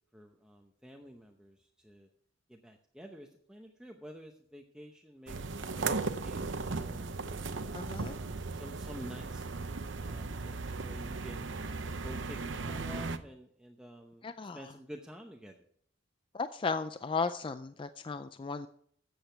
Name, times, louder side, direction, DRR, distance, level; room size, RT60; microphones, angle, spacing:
voice 1, 0.1-2.1 2.5-6.0 6.2-7.5 8.0-9.5 10.0-11.5 12.0-14.3 14.5-15.7, equal, 5° right, 2 dB, 0.8 m, -50 dB
sound 1, 5.3-13.2, right 3 dB, 70° right, 0.8 m, -37 dB
voice 2, 7.7-8.2 14.2-14.7 16.3-18.7, left 4 dB, 25° left, 11 dB, 0.4 m, -35 dB
14.0 x 8.0 x 4.5 m, 0.63 s
head